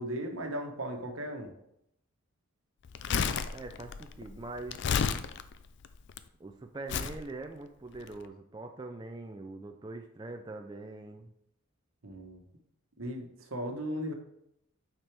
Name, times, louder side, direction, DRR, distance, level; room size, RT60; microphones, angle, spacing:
voice 1, 0.0-1.5 12.0-12.4 13.0-14.1, equal, 75° right, 4 dB, 1.1 m, -36 dB
Crumpling crinkling, 2.9-6.2 6.9-7.2 8.0-8.1, left 6 dB, 55° left, 0.4 m, -32 dB
voice 2, 3.5-4.8 6.4-11.3, right 2 dB, 20° right, 4 dB, 0.3 m, -43 dB
8.8 x 4.4 x 3.4 m, 0.77 s
head